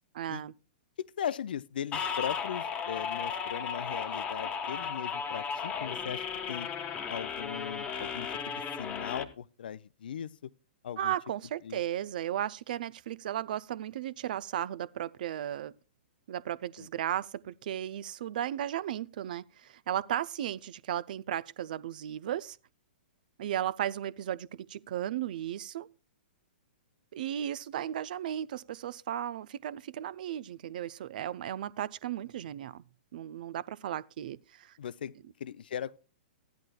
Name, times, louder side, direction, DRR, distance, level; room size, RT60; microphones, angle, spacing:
voice 1, 0.1-0.5 11.0-15.7 16.3-22.6 23.4-25.9 27.1-32.8 33.1-34.7, right 11 dB, 55° right, 0.4 m, -35 dB
voice 2, 1.0-6.7 7.1-10.5 10.8-11.1 11.6-11.8 16.8-16.9 34.8-35.1 35.4-35.9, left 9 dB, 65° left, 0.4 m, -38 dB
sound 1, 1.9-9.2, left 6 dB, 20° left, 1.1 m, -35 dB
15.0 x 10.5 x 2.3 m
figure-of-eight pair, 115°, 5 cm